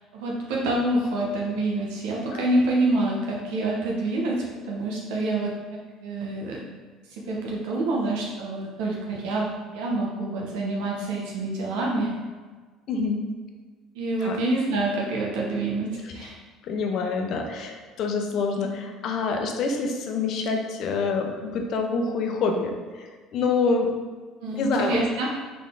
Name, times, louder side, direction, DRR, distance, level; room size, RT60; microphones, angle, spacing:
voice 1, 0.1-6.6 7.1-12.2 13.9-16.4 24.4-25.3, right 2 dB, 85° right, -3 dB, 0.8 m, -27 dB
voice 2, 12.9-13.2 14.2-14.4 16.6-23.9 24.6-25.0, left 4 dB, 60° left, 3 dB, 0.7 m, -26 dB
3.8 x 3.7 x 3.7 m, 1.4 s
supercardioid pair, 85°, 0 cm